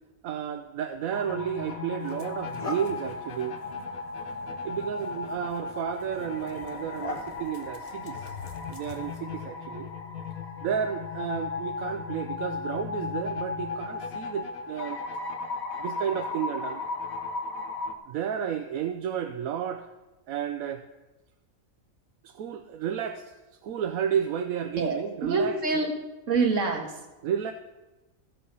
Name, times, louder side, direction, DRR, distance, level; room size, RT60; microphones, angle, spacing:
voice 1, 0.2-3.6 4.6-8.3 8.7-9.9 10.6-15.0 15.8-16.8 18.1-19.9 20.3-20.9 22.2-23.3 23.6-25.6 27.2-27.5, right 8 dB, 85° right, 7 dB, 1.1 m, -32 dB
sound 1, 1.1-17.9, left 4 dB, 80° left, 1.4 m, -36 dB
sound 2, 1.3-1.4 2.0-9.4, left 2 dB, 30° left, 1.1 m, -44 dB
voice 2, 24.8-25.9 26.3-27.0, right 3 dB, 65° right, 1 dB, 2.1 m, -26 dB
14.5 x 7.5 x 5.5 m, 1.1 s
omnidirectional pair, 1.4 m